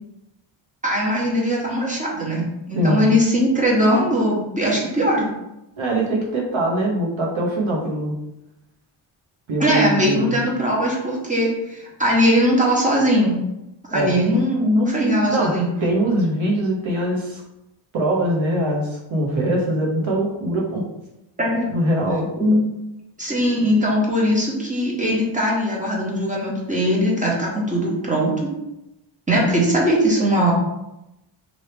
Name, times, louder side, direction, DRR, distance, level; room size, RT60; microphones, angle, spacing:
voice 1, 0.8-5.3 9.6-13.4 13.9-15.7 21.4-21.7 22.4-22.6 23.2-28.5 29.3-30.5, equal, 15° right, -4 dB, 1.1 m, -20 dB
voice 2, 5.8-8.1 9.5-10.4 13.9-14.1 15.3-15.5 15.8-17.4 17.9-20.8 21.7-22.3, right 1 dB, 75° right, -2 dB, 1.1 m, -22 dB
2.9 x 2.7 x 3.4 m, 0.90 s
cardioid pair, 70°, 47 cm